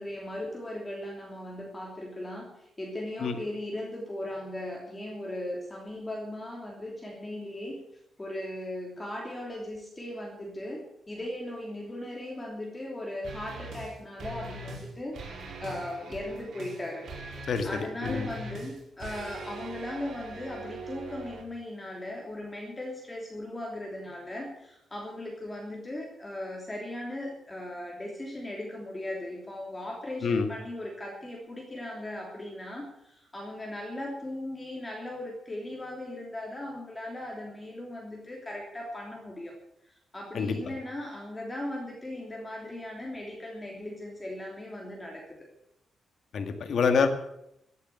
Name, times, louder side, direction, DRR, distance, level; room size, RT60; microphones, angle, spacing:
voice 1, 0.0-7.8 8.2-17.1 17.6-39.5 39.9-45.2, left 1 dB, 15° left, -1 dB, 3.1 m, -38 dB
sound 1, 13.2-13.9 14.2-14.9 15.1-21.4, right 2 dB, 65° right, 4.6 m, -41 dB
voice 2, 46.3-47.1, left 5 dB, 60° left, 7 dB, 1.9 m, -26 dB
15.0 x 8.3 x 8.3 m, 0.79 s
cardioid pair, 120°, 0 cm